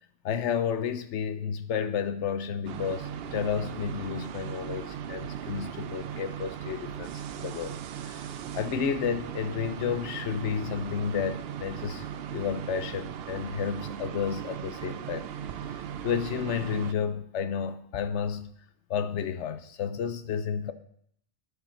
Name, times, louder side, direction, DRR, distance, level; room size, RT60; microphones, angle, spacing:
voice 1, 0.2-15.3 15.6-18.5 18.9-20.7, left 7 dB, 70° left, 1.0 m, -31 dB
sound 1, 2.6-16.9, right 9 dB, 60° right, 0.8 m, -38 dB
10.5 x 9.8 x 4.4 m
omnidirectional pair, 1.2 m